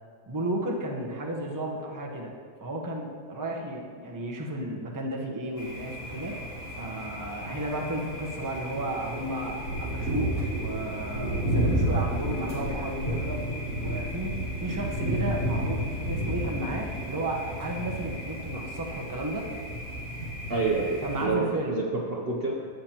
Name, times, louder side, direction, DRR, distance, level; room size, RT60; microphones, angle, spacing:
voice 1, 0.3-2.3 2.6-6.4 6.7-13.4 13.8-19.5 21.0-21.8, right 1 dB, 15° right, -1 dB, 0.8 m, -33 dB
Thunder, 5.6-21.2, equal, 85° left, 3.2 m, -32 dB
voice 2, 20.5-22.5, right 4 dB, 50° right, -2 dB, 0.8 m, -28 dB
13.0 x 8.5 x 2.9 m, 2.1 s
omnidirectional pair, 1.7 m